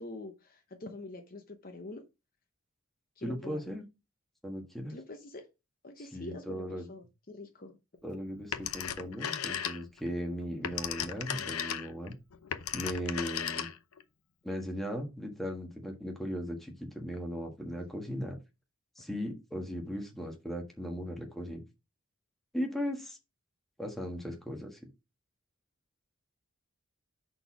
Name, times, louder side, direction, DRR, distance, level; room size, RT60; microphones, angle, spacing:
voice 1, 0.0-2.0 3.2-3.6 4.9-5.4 5.8-7.8, left 2 dB, 40° left, 0.9 m, -45 dB
voice 2, 3.2-3.8 4.4-4.9 6.0-6.9 8.0-12.1 12.7-13.7 14.4-18.4 19.0-21.6 22.5-23.2 23.8-24.8, equal, ahead, 1.4 m, -37 dB
Telephone, 8.5-10.1 10.4-14.0, left 8 dB, 85° left, 0.7 m, -36 dB
5.3 x 4.3 x 6.0 m
head